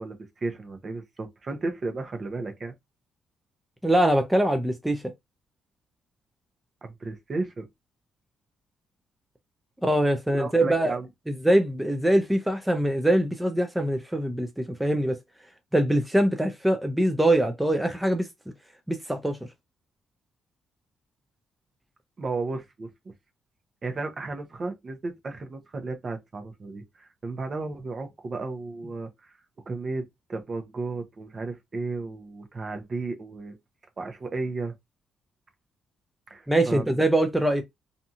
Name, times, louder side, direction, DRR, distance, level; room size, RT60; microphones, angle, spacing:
voice 1, 0.0-2.7 6.8-7.7 10.3-11.1 22.2-23.1 23.8-29.3 29.7-33.6 34.0-34.7 36.3-37.0, right 3 dB, 40° right, 0.7 m, -34 dB
voice 2, 3.8-5.0 9.8-10.9 11.3-15.2 15.7-18.3 18.9-19.4 36.5-37.6, right 1 dB, 5° right, 0.4 m, -23 dB
2.6 x 2.3 x 2.7 m
cardioid pair, 90°, 0 cm